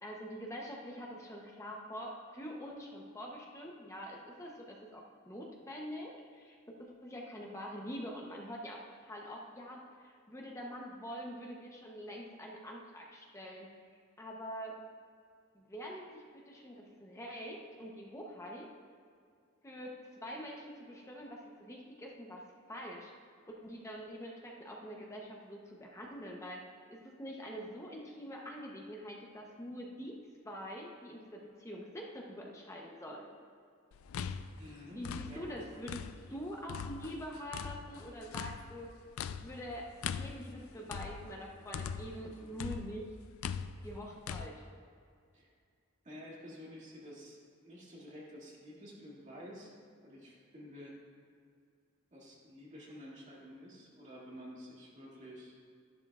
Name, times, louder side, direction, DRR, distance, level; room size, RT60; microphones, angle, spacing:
voice 1, 0.0-13.7 14.2-14.8 15.5-18.7 19.6-22.4 22.7-23.1 23.5-26.6 26.9-30.2 30.4-33.3 34.9-39.0 39.3-43.1 43.8-44.7, equal, 15° left, -1 dB, 0.8 m, -45 dB
sound 1, 33.9-36.4 36.7-42.3 42.6-44.5, left 7 dB, 85° left, 0.4 m, -41 dB
voice 2, 34.6-35.6 45.3-45.5 46.0-49.7 50.0-50.9 52.1-55.6, equal, 35° right, -5 dB, 2.3 m, -50 dB
12.0 x 11.0 x 2.4 m, 2.3 s
head